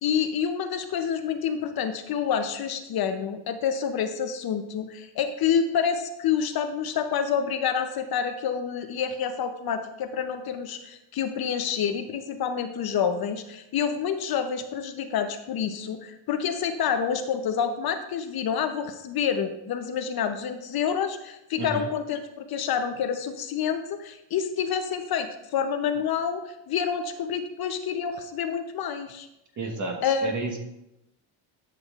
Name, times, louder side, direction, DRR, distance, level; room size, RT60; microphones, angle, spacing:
voice 1, 0.0-29.3 30.0-30.3, left 7 dB, 50° left, 8 dB, 0.7 m, -28 dB
voice 2, 21.6-21.9 29.6-30.6, right 2 dB, 40° right, 2 dB, 1.3 m, -31 dB
11.0 x 6.1 x 2.4 m, 0.87 s
cardioid pair, 120°, 47 cm